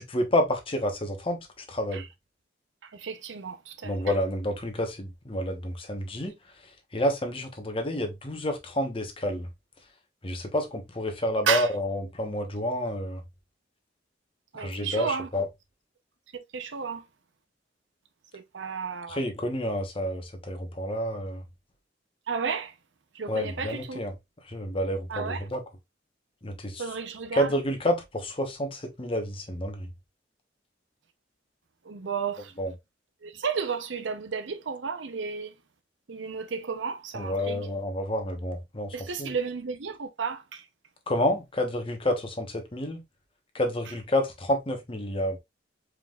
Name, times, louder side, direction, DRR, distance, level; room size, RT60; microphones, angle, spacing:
voice 1, 0.0-2.0 3.8-6.3 6.9-9.5 10.2-13.2 14.5-15.5 19.1-21.4 23.3-24.1 24.5-25.6 26.4-26.9 27.3-29.9 32.6-32.7 37.1-39.3 41.1-43.0 43.5-45.4, equal, 30° left, 1.0 m, -29 dB
voice 2, 3.0-3.6 3.8-3.9 11.5-11.7 14.5-15.3 16.5-17.0 18.3-19.2 22.3-22.7 23.2-24.0 25.1-25.4 26.8-27.5 31.9-32.5 33.2-35.5 36.1-37.7 38.9-40.6, right 6 dB, 80° right, 0.7 m, -32 dB
4.7 x 3.7 x 2.4 m
head